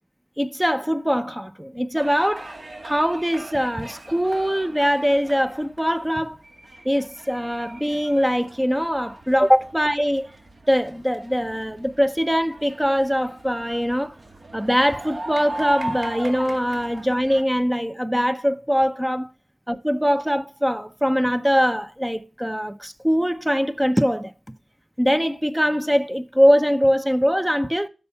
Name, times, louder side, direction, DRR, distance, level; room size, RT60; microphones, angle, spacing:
voice 1, 0.4-2.5 2.8-6.4 6.8-10.3 10.7-14.2 14.5-19.3 19.7-24.3 25.0-27.9, equal, 5° right, 0.6 m, -22 dB
sound 1, 2.0-17.4, right 1 dB, 55° right, 1.9 m, -39 dB
12.5 x 4.4 x 5.5 m
wide cardioid pair, 75°, 0 cm